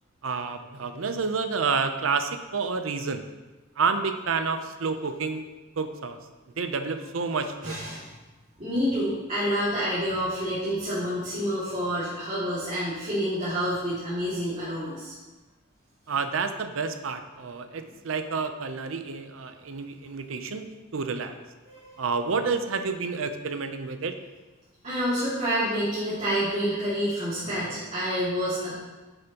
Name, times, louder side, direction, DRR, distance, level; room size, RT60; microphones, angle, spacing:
voice 1, 0.2-3.2 3.8-5.5 5.8-6.2 6.6-7.8 16.1-21.4 22.0-24.2, right 5 dB, 85° right, 8 dB, 0.6 m, -29 dB
voice 2, 7.6-8.1 8.6-15.1 21.6-22.0 24.8-28.7, equal, 35° right, -13 dB, 2.4 m, -28 dB
8.9 x 7.0 x 3.0 m, 1.2 s
head